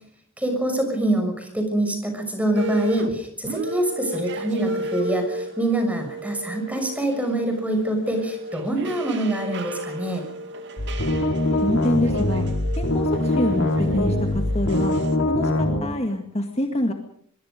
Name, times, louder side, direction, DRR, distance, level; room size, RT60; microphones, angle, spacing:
voice 1, 0.4-10.2, right 1 dB, 5° right, 5 dB, 6.2 m, -25 dB
sound 1, 2.5-3.1 3.4-15.2, right 1 dB, 55° right, 2.5 m, -34 dB
sound 2, 10.8-15.8, left 1 dB, 85° left, 4.2 m, -23 dB
voice 2, 11.6-12.5 12.8-14.9 15.3-16.9, left 1 dB, 30° left, 4 dB, 2.0 m, -25 dB
24.0 x 23.0 x 5.2 m, 0.62 s
head